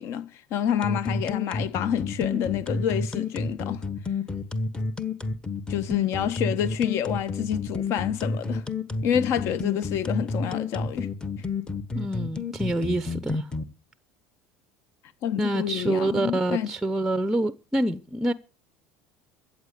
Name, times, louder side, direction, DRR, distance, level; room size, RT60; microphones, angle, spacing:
voice 1, 0.0-3.8 5.7-8.7 9.0-11.1 11.4-11.5 15.2-16.7, left 9 dB, 55° left, 1.3 m, -28 dB
sound 1, 0.8-13.6, left 4 dB, 15° left, 1.3 m, -30 dB
voice 2, 11.9-13.5 15.4-18.3, right 1 dB, 5° right, 0.7 m, -26 dB
14.0 x 8.4 x 8.2 m
cardioid pair, 140°, 6 cm